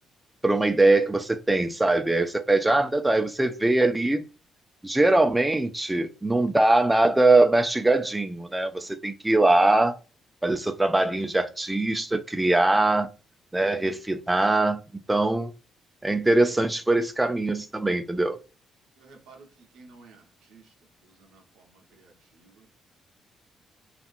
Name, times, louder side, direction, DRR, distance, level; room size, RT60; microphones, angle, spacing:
voice 1, 0.4-4.2 4.8-10.0 10.4-13.1 13.5-14.8 15.1-15.5 16.0-18.4, right 2 dB, 10° right, 0.4 m, -22 dB
voice 2, 19.0-20.7 21.0-22.9, right 3 dB, 90° right, 0.8 m, -54 dB
2.7 x 2.4 x 2.4 m
cardioid pair, 90°, 0 cm